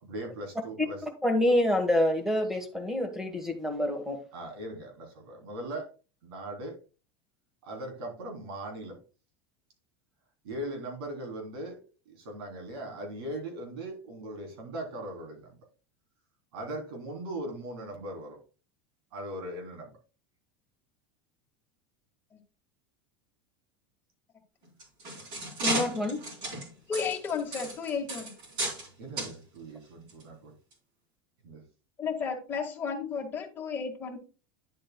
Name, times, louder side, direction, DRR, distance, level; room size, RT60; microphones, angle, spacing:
voice 1, 0.0-1.0 4.3-5.9 6.2-6.8 7.6-9.0 10.4-11.8 12.0-15.6 16.5-18.4 19.1-19.9 29.0-30.5 31.4-31.6, right 1 dB, 85° right, 3.2 m, -39 dB
voice 2, 1.2-4.2 25.6-26.2, left 1 dB, 5° right, 1.2 m, -27 dB
sound 1, 24.6-28.9 29.2-29.3 30.1-30.2 30.7-30.8, right 2 dB, 40° right, 3.7 m, -34 dB
voice 3, 26.9-28.3 32.0-34.2, left 6 dB, 15° left, 1.7 m, -33 dB
10.0 x 7.5 x 2.2 m
supercardioid pair, 170°, 12 cm